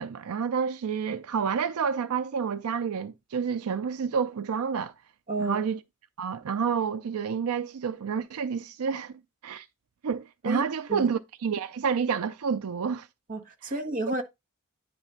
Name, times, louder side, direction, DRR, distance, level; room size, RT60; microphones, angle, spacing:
voice 1, 0.0-4.9 5.4-5.8 6.2-9.1 9.4-9.7 10.0-13.1 13.6-13.7 14.1-14.2, right 6 dB, 75° right, 0.4 m, -29 dB
voice 2, 5.3-5.6 10.4-10.6 10.9-11.1 13.3-14.2, right 2 dB, 40° right, 1.4 m, -31 dB
9.7 x 3.4 x 5.6 m
head